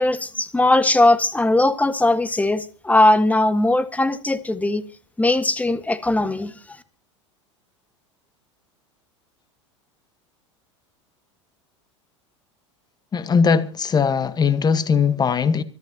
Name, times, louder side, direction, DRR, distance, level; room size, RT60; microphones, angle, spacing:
voice 1, 0.0-4.8 5.2-6.5, left 2 dB, 10° left, 1.4 m, -19 dB
voice 2, 13.1-15.6, left 6 dB, 25° left, 1.2 m, -19 dB
25.0 x 13.0 x 2.8 m
hypercardioid pair, 85°, 16 cm